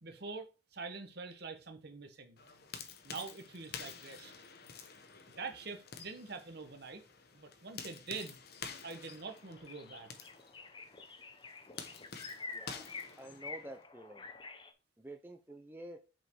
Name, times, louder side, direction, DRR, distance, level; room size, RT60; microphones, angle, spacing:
voice 1, 0.0-2.4 3.0-4.3 5.4-7.0 7.3-8.4 8.8-10.1, right 4 dB, 55° right, 1.2 m, -45 dB
sound 1, 2.4-13.8, left 6 dB, 55° left, 0.9 m, -50 dB
sound 2, 8.9-9.0 9.3-14.7, left 4 dB, 25° left, 0.7 m, -48 dB
voice 2, 12.5-12.8 13.2-14.3 15.0-16.0, right 1 dB, 10° right, 0.5 m, -49 dB
6.1 x 5.0 x 4.6 m
head